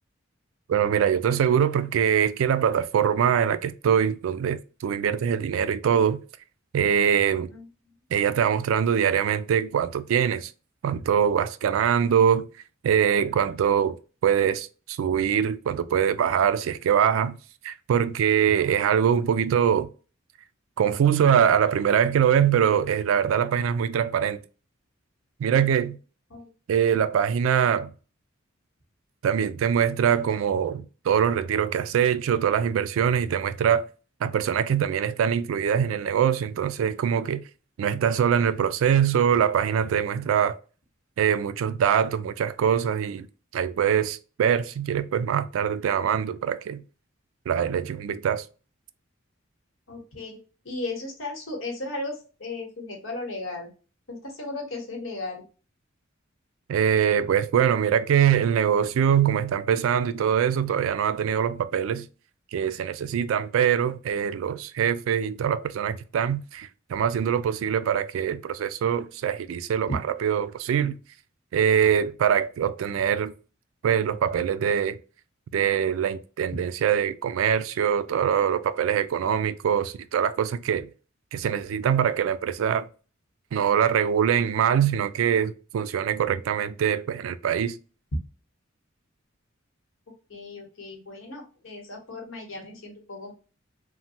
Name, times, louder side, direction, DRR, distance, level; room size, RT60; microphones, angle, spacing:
voice 1, 0.7-6.2 6.7-7.5 8.1-10.5 10.8-12.4 12.8-14.0 14.2-17.4 17.6-19.9 20.8-24.4 25.4-26.0 26.7-27.9 29.2-33.9 34.2-37.4 37.8-40.6 41.2-43.3 43.5-46.8 47.5-48.4 56.7-62.1 62.5-71.0 71.5-73.3 73.8-75.0 75.5-80.9 81.3-82.9 83.5-87.8, right 8 dB, 75° right, 0.3 m, -23 dB
voice 2, 49.9-50.4 50.6-53.7 54.1-55.4 90.3-93.3, left 2 dB, 80° left, 1.1 m, -36 dB
3.1 x 2.1 x 2.7 m
head